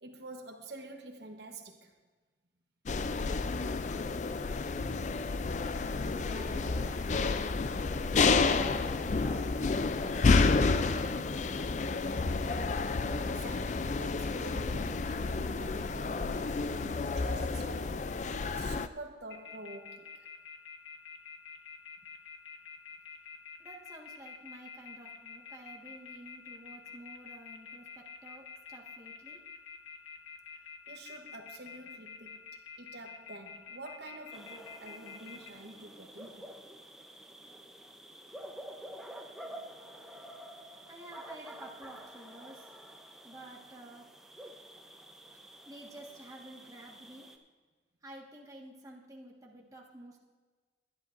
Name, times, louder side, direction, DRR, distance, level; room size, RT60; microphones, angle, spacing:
voice 1, 0.0-1.9 13.0-18.1 18.5-20.3 30.9-32.5 32.8-36.5, right 2 dB, 65° right, 1.1 m, -48 dB
sound 1, 2.9-18.9, left 4 dB, 40° left, 0.4 m, -30 dB
voice 2, 6.1-7.6 7.9-11.7 23.6-29.4 40.9-42.6 43.2-44.1 45.6-47.3 48.0-50.2, right 1 dB, 20° right, 1.6 m, -51 dB
sound 2, 19.3-35.5, left 6 dB, 75° left, 1.6 m, -47 dB
sound 3, 34.3-47.4, right 1 dB, 5° right, 0.8 m, -49 dB
22.0 x 11.0 x 2.6 m
head